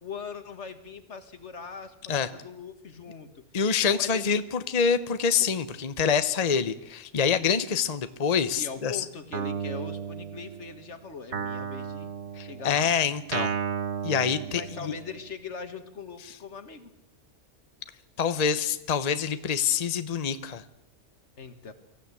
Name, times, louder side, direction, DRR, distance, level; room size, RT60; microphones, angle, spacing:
voice 1, 0.0-3.4 3.8-4.4 5.4-5.5 8.6-12.1 12.4-12.9 14.5-16.9 21.4-21.7, left 5 dB, 75° left, 9 dB, 2.0 m, -41 dB
voice 2, 3.5-8.9 12.4-13.5 14.0-14.6 18.2-20.6, left 6 dB, 35° left, 12 dB, 0.9 m, -26 dB
Guitar, 9.3-10.8 11.3-15.2, right 7 dB, 70° right, 1.4 m, -34 dB
24.0 x 15.0 x 8.3 m, 0.85 s
omnidirectional pair, 1.2 m